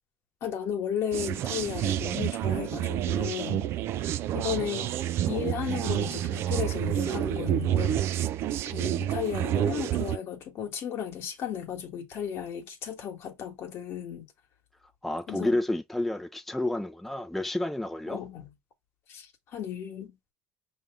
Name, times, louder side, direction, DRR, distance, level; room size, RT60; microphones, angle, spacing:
voice 1, 0.4-3.7 4.3-5.0 5.3-8.1 8.7-14.3 15.3-15.6 18.1-18.5 19.1-20.3, left 9 dB, 60° left, 1.3 m, -34 dB
sound 1, 1.1-10.2, right 11 dB, 60° right, 0.4 m, -29 dB
voice 2, 15.0-18.2, left 1 dB, 5° left, 0.5 m, -30 dB
5.6 x 2.7 x 3.4 m
supercardioid pair, 80°, 5 cm